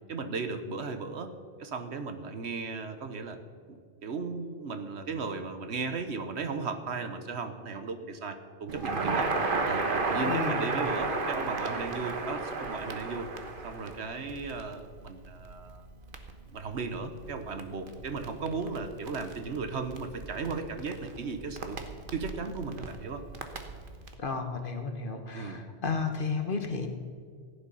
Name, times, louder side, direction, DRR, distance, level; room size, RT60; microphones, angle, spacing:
voice 1, 0.1-1.3 1.6-3.4 3.7-9.3 9.7-13.3 13.6-15.9 16.5-21.8 22.1-23.2 25.3-25.6, right 4 dB, 80° right, 8 dB, 1.3 m, -36 dB
Crackle, 8.7-24.1, right 3 dB, 55° right, 1.3 m, -35 dB
voice 2, 10.2-10.6 24.2-26.9, left 4 dB, 55° left, 6 dB, 1.4 m, -33 dB
15.5 x 10.0 x 5.6 m, 2.1 s
omnidirectional pair, 1.1 m